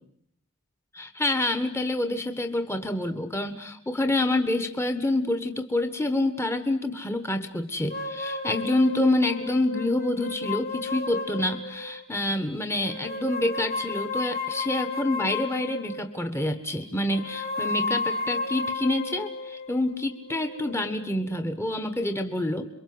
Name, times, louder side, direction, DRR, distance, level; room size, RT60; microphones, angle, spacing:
voice 1, 0.9-22.7, left 1 dB, 10° left, 7 dB, 1.4 m, -27 dB
sound 1, 7.9-12.1 12.8-16.2 17.1-21.5, left 3 dB, 45° left, 2.3 m, -33 dB
28.0 x 23.5 x 7.9 m, 0.69 s
head